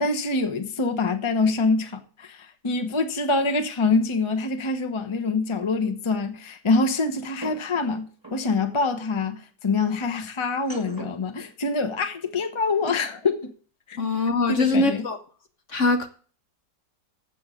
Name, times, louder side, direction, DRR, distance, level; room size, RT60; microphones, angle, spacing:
voice 1, 0.0-13.5 13.9-14.0 14.5-15.1, left 3 dB, 25° left, 0.6 m, -25 dB
sound 1, 5.3-5.4 7.4-8.5 10.5-11.3 12.7-13.2, right 3 dB, 10° right, 2.0 m, -41 dB
voice 2, 14.0-15.2 15.7-16.1, left 2 dB, 50° left, 1.0 m, -22 dB
7.8 x 6.8 x 7.6 m
omnidirectional pair, 2.0 m